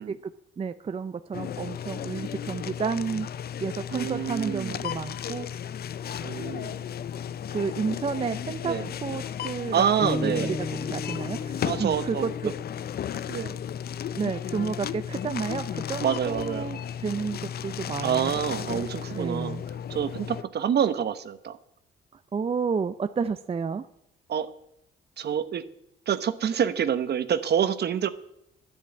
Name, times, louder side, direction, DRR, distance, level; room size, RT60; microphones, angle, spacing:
voice 1, 0.0-3.3 3.6-5.6 7.5-8.8 9.0-9.9 10.2-10.5 10.9-12.5 14.1-18.3 18.7-18.8 19.1-19.6 22.3-23.9, right 5 dB, 30° right, 11 dB, 0.5 m, -31 dB
sound 1, 1.3-20.4, left 9 dB, 50° left, 0.5 m, -34 dB
voice 2, 3.9-4.8 6.2-6.8 8.6-8.9 9.7-10.6 11.6-12.3 13.3-13.6 16.0-16.8 18.0-19.6 19.9-21.6 24.3-24.5 25.2-25.6 26.1-28.1, right 8 dB, 55° right, 12 dB, 1.0 m, -27 dB
sound 2, 10.0-14.1, left 3 dB, 30° left, 1.4 m, -36 dB
10.5 x 10.5 x 8.4 m, 0.78 s
cardioid pair, 90°, 20 cm